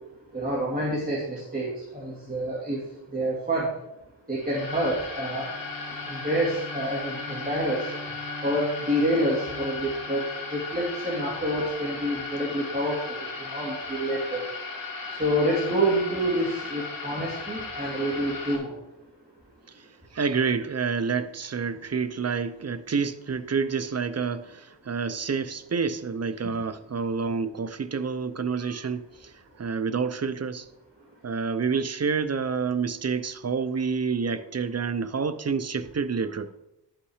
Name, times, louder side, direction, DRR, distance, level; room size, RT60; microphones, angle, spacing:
voice 1, 0.3-1.7 1.9-2.8 3.1-3.7 4.3-5.5 6.1-7.8 8.4-10.2 10.5-13.2 13.5-14.4 15.2-18.7, right 1 dB, 20° right, 2.4 m, -27 dB
sound 1, 4.4-18.6, left 3 dB, 50° left, 2.4 m, -36 dB
Bowed string instrument, 5.4-11.1, left 1 dB, 65° right, 2.4 m, -43 dB
voice 2, 20.1-29.3 29.6-30.7 31.2-36.5, right 5 dB, 35° right, 0.6 m, -28 dB
11.0 x 5.8 x 4.9 m
wide cardioid pair, 85°, 43 cm